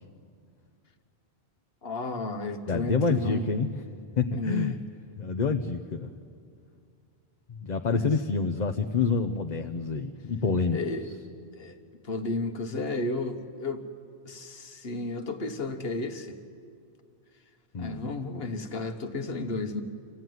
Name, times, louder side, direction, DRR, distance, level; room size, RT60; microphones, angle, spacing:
voice 1, 1.8-3.5 4.3-4.8 7.8-8.1 10.7-11.1 11.5-11.8 12.0-13.9 14.3-16.4 17.8-19.8, left 3 dB, 65° left, 6 dB, 1.5 m, -33 dB
voice 2, 2.7-3.8 4.2-4.7 5.2-6.1 7.5-10.8 17.7-18.1, left 4 dB, 45° left, 5 dB, 0.8 m, -27 dB
26.0 x 15.5 x 9.3 m, 2.3 s
omnidirectional pair, 1.1 m